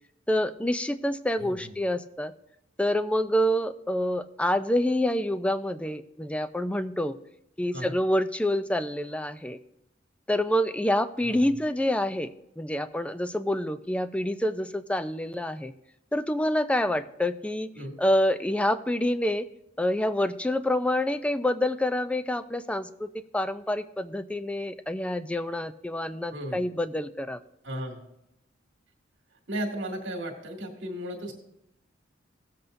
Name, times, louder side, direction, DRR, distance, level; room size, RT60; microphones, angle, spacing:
voice 1, 0.3-2.3 2.8-7.2 7.6-9.6 10.3-12.3 12.6-15.7 16.1-17.7 18.0-19.5 19.8-27.4, left 1 dB, 5° left, 12 dB, 0.3 m, -27 dB
voice 2, 27.6-28.0 29.5-31.3, right 1 dB, 65° right, 2 dB, 2.0 m, -35 dB
17.0 x 7.7 x 2.6 m, 0.83 s
head